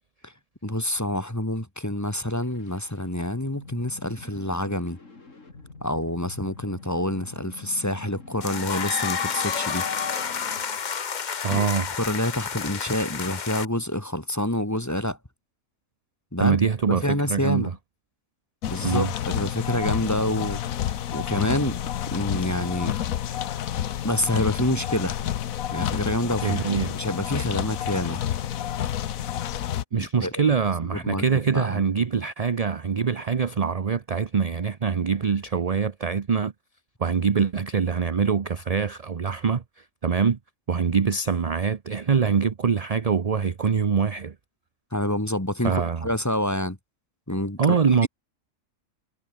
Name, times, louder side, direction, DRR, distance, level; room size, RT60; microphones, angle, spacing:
voice 1, 0.6-5.0 5.8-9.8 11.5-11.7 12.0-15.2 16.3-16.6 16.9-17.7 18.7-20.6 21.1-21.8 22.1-22.9 24.0-25.1 25.7-26.6 26.9-28.2 30.0-30.3 30.9-31.2 31.5-31.8 44.9-46.8 47.3-47.8 48.0-48.1, left 1 dB, 10° left, 2.6 m, -27 dB
sound 1, 2.3-10.8, left 3 dB, 65° left, 3.7 m, -46 dB
sound 2, 8.4-13.7, left 6 dB, 40° left, 0.8 m, -30 dB
voice 2, 11.4-11.9 16.4-17.8 18.8-19.1 26.4-27.0 29.9-36.5 37.0-40.4 40.7-44.3 45.6-46.1 47.6-48.1, right 6 dB, 35° right, 0.7 m, -24 dB
sound 3, 18.6-29.8, left 11 dB, 90° left, 1.3 m, -29 dB
omnidirectional pair, 1.4 m